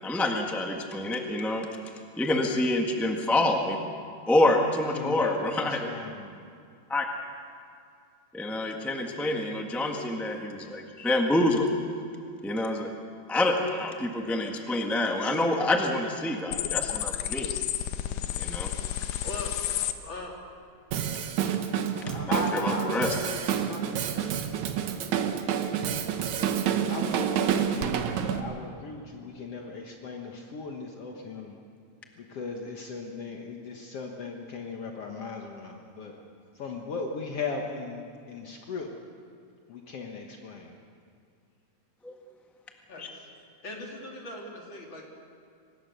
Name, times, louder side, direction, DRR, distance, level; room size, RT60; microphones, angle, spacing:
voice 1, 0.0-1.7 2.2-3.8 4.3-5.8 6.9-7.1 8.3-11.7 12.4-12.9 13.3-17.5 18.4-18.7 22.3-23.1 42.0-42.1 43.0-43.1, left 1 dB, ahead, 2 dB, 0.7 m, -27 dB
voice 2, 4.9-6.5 21.9-23.4 23.7-24.6 26.9-31.6 32.2-36.2 36.5-38.9 39.7-40.8, left 4 dB, 60° left, 1 dB, 2.2 m, -37 dB
sound 1, 16.5-19.9, left 11 dB, 80° left, 2.2 m, -31 dB
voice 3, 19.2-19.7 20.0-20.4 42.9-43.3 43.6-45.1, left 2 dB, 40° left, -1 dB, 3.9 m, -40 dB
Drum kit, 20.9-28.4, right 8 dB, 75° right, 2.4 m, -28 dB
24.5 x 19.5 x 6.8 m, 2.4 s
omnidirectional pair, 3.3 m